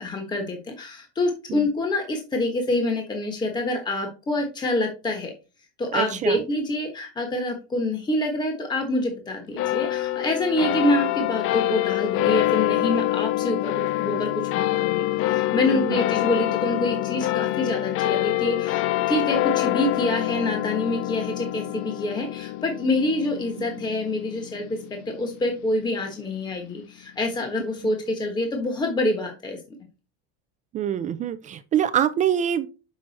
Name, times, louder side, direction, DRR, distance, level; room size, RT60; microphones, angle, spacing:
voice 1, 0.0-5.3 5.8-24.8 25.1-29.6, left 1 dB, 15° left, 4 dB, 1.3 m, -26 dB
voice 2, 5.9-6.4 15.7-16.0 30.7-32.7, right 10 dB, 25° right, 10 dB, 0.4 m, -25 dB
sound 1, 9.6-26.3, left 15 dB, 45° left, 0.5 m, -26 dB
7.6 x 6.1 x 4.2 m, 0.32 s
cardioid pair, 165°, 31 cm